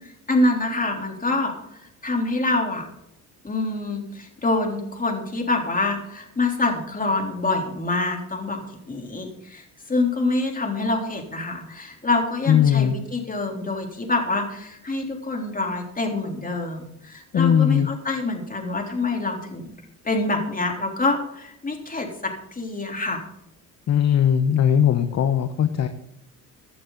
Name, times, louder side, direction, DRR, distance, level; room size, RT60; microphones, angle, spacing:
voice 1, 0.0-2.9 3.4-19.7 20.0-23.2, left 2 dB, 25° left, 2 dB, 3.5 m, -26 dB
voice 2, 12.5-12.9 17.3-17.9 23.9-25.9, left 9 dB, 50° left, 9 dB, 1.1 m, -19 dB
16.5 x 11.5 x 4.0 m, 0.77 s
supercardioid pair, 80°, 34 cm